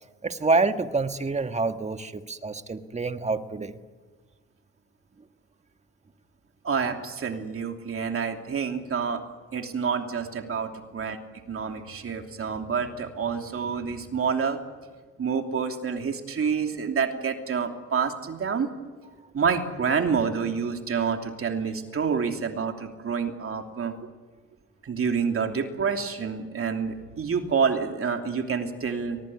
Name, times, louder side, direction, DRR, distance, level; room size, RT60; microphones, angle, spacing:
voice 1, 0.2-3.7, right 3 dB, 20° right, 8 dB, 1.5 m, -27 dB
voice 2, 6.6-9.2 9.5-11.2 11.5-14.6 15.2-18.7 19.3-23.9 24.8-29.2, right 6 dB, 45° right, 4 dB, 3.0 m, -28 dB
24.0 x 19.0 x 9.7 m, 1.4 s
cardioid pair, 90°, 30 cm